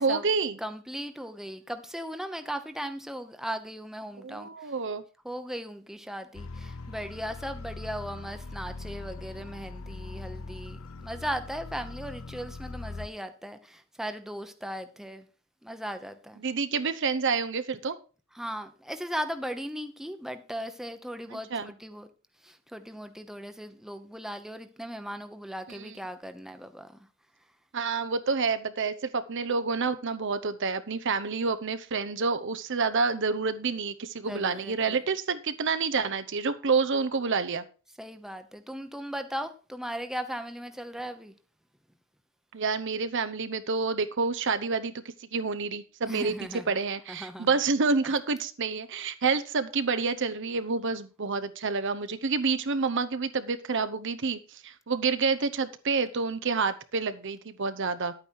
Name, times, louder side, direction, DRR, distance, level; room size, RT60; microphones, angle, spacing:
voice 1, 0.0-0.6 4.2-5.0 16.4-18.0 21.3-21.7 25.7-26.0 27.7-37.6 42.5-44.9 45.3-46.3 46.7-58.1, right 4 dB, 60° right, 0.8 m, -28 dB
voice 2, 0.6-4.7 5.2-15.3 15.6-16.4 18.3-22.1 22.4-27.0 34.2-35.0 38.0-41.3 46.1-46.7 47.1-47.5, equal, ahead, 0.9 m, -37 dB
sound 1, 6.3-13.1, left 3 dB, 85° left, 0.7 m, -41 dB
10.5 x 8.9 x 4.6 m
head